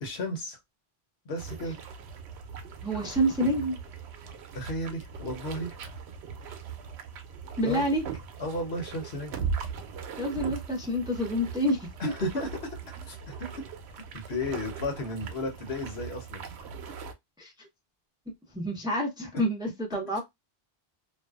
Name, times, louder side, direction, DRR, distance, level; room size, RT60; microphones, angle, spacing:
voice 1, 0.0-0.6 1.2-1.8 4.5-5.8 7.6-7.8 8.4-9.3 12.0-12.5 13.0-13.5 14.1-16.4, left 1 dB, 75° left, 1.1 m, -34 dB
sound 1, 1.4-17.1, right 6 dB, 90° right, 0.8 m, -39 dB
voice 2, 2.8-3.8 7.6-8.0 10.2-12.1 17.4-17.7 18.5-20.2, equal, 5° right, 0.6 m, -28 dB
2.6 x 2.2 x 2.2 m
omnidirectional pair, 1.1 m